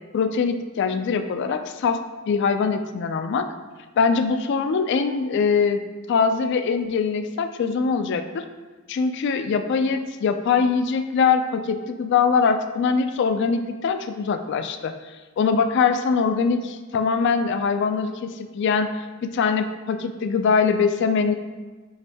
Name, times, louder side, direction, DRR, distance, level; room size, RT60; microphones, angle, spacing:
voice 1, 0.1-2.0 2.3-3.5 4.0-5.8 6.1-8.4 8.9-14.9 15.4-18.9 19.2-21.3, left 5 dB, 60° left, 8 dB, 0.3 m, -22 dB
5.6 x 2.6 x 3.4 m, 1.3 s
head